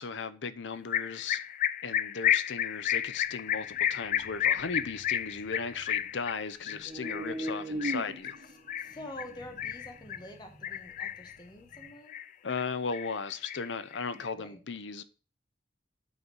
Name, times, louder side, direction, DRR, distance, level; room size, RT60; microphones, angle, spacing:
voice 1, 0.0-1.4 1.8-8.4 12.4-15.0, left 5 dB, 85° left, 0.7 m, -36 dB
sound 1, 0.9-10.3 10.6-11.3 11.7-12.6 12.9-14.3, left 11 dB, 45° left, 0.3 m, -32 dB
sound 2, 3.7-6.3 6.6-11.9, right 1 dB, 70° right, 1.8 m, -41 dB
voice 2, 8.8-12.2 14.4-14.6, left 1 dB, 25° left, 1.5 m, -46 dB
8.3 x 4.0 x 6.2 m
head